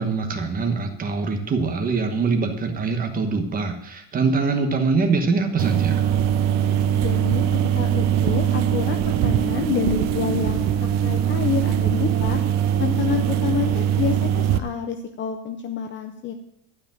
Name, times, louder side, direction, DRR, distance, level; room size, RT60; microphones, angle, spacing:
voice 1, 0.0-6.0, right 4 dB, 20° right, 5 dB, 1.2 m, -23 dB
sound 1, 5.6-14.6, right 10 dB, 35° right, 0.6 m, -21 dB
voice 2, 6.9-12.4 12.8-16.3, left 7 dB, 25° left, 6 dB, 0.5 m, -28 dB
12.0 x 5.2 x 8.9 m, 0.77 s
cardioid pair, 170°, 47 cm